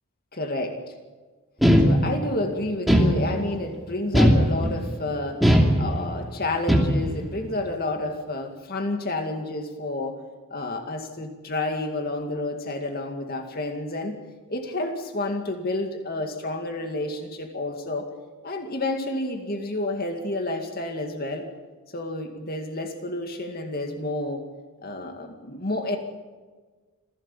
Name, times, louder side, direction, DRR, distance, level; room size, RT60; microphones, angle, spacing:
voice 1, 0.3-0.8 1.8-5.4 5.8-10.2 10.5-14.2 14.5-18.1 18.4-21.5 21.9-24.4 24.8-26.0, left 2 dB, 45° left, 4 dB, 2.2 m, -30 dB
sound 1, 1.6-2.4 2.9-3.6 4.1-4.9 5.4-6.2 6.7-7.3, equal, ahead, 2.7 m, -19 dB
27.0 x 16.5 x 7.3 m, 1.4 s
head